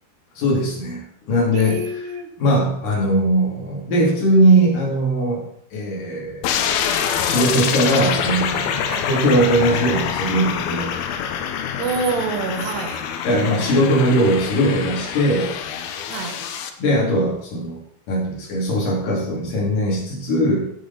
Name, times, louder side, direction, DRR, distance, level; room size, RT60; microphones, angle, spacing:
voice 1, 0.4-2.1 2.4-5.4 5.7-6.6 7.2-10.9 13.2-15.6 16.8-17.8 18.1-20.7, right 1 dB, 60° left, -3 dB, 4.2 m, -20 dB
voice 2, 1.5-2.3 8.9-9.1 11.8-13.1 16.1-16.5, right 4 dB, 80° right, 6 dB, 3.4 m, -27 dB
sound 1, 6.4-16.7, left 8 dB, 75° left, 2.6 m, -25 dB
15.5 x 6.8 x 4.1 m, 0.67 s
omnidirectional pair, 4.7 m